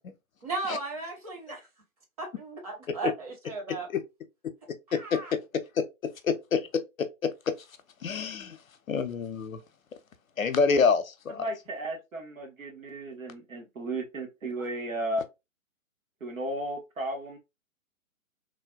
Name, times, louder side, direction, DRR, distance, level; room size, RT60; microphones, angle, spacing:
voice 1, 0.4-1.6 2.2-3.9 4.9-5.3, right 3 dB, 25° right, 0.9 m, -35 dB
voice 2, 4.9-5.4 6.0-6.6 8.0-8.6 8.9-9.6 10.4-11.4, left 5 dB, 75° left, 0.6 m, -26 dB
voice 3, 11.4-15.2 16.2-17.4, right 1 dB, 70° right, 1.2 m, -34 dB
3.3 x 2.2 x 2.2 m
figure-of-eight pair, 130°, 42 cm